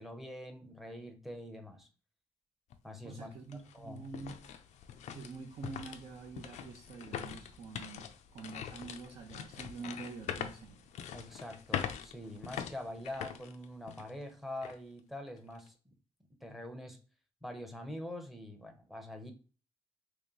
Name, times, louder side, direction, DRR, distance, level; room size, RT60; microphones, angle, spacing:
voice 1, 0.0-1.9 2.8-3.3 3.7-4.0 11.1-15.9 16.4-17.0 17.4-19.3, left 1 dB, ahead, 5 dB, 0.7 m, -44 dB
sound 1, 2.7-2.8 3.3-14.2 14.6-14.8 15.3-15.7, left 9 dB, 90° left, 0.4 m, -43 dB
voice 2, 3.0-4.4 5.1-10.9, right 4 dB, 65° right, 1 dB, 0.7 m, -46 dB
3.1 x 2.9 x 3.7 m, 0.35 s
cardioid pair, 125°, 12 cm